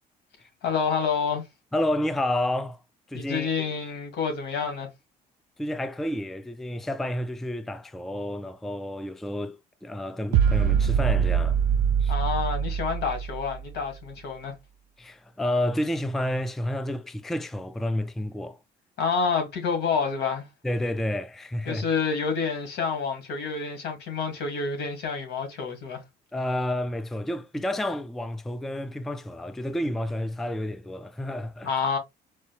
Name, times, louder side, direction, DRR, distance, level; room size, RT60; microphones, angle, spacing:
voice 1, 0.6-1.4 3.1-4.9 12.1-14.5 19.0-20.5 21.7-26.0 31.6-32.0, left 5 dB, 75° left, 1.8 m, -28 dB
voice 2, 1.7-2.8 3.1-3.7 5.6-11.6 12.0-12.1 15.0-18.6 20.6-21.9 26.3-31.7, left 1 dB, ahead, 0.3 m, -30 dB
sound 1, 10.3-13.8, right 8 dB, 85° right, 0.4 m, -24 dB
4.2 x 2.6 x 3.2 m
cardioid pair, 110°, 17 cm